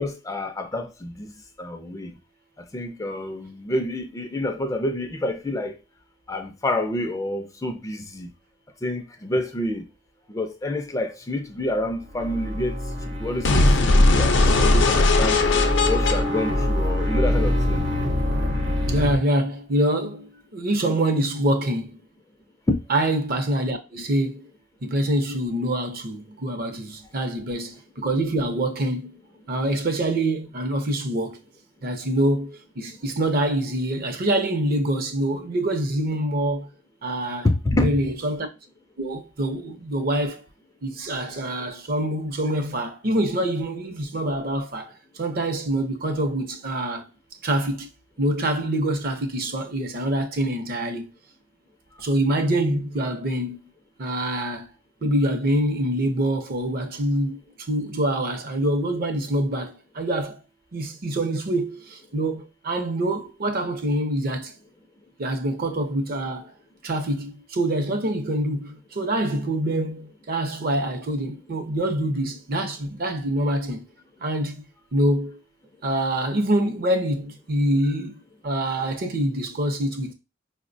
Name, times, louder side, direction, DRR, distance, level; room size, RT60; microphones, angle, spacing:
voice 1, 0.0-1.3 1.6-2.1 2.6-5.8 6.3-8.3 8.8-9.9 10.3-12.8 13.0-15.4 15.9-17.9 22.7-22.8 37.4-37.9, left 1 dB, 15° left, 0.3 m, -28 dB
sound 1, 11.7-19.2, left 1 dB, 75° right, 0.8 m, -26 dB
sound 2, 13.4-17.4, left 2 dB, 70° left, 0.5 m, -19 dB
voice 2, 18.9-22.0 22.9-24.4 24.8-29.2 29.5-31.4 31.8-36.7 37.0-37.5 37.8-38.5 39.0-40.5 40.8-47.1 47.4-47.9 48.2-51.1 52.0-53.6 54.0-54.7 55.0-60.4 60.7-64.5 65.2-66.5 66.8-73.9 74.2-75.4 75.8-80.1, right 1 dB, 50° right, 0.6 m, -25 dB
4.8 x 2.1 x 2.5 m
head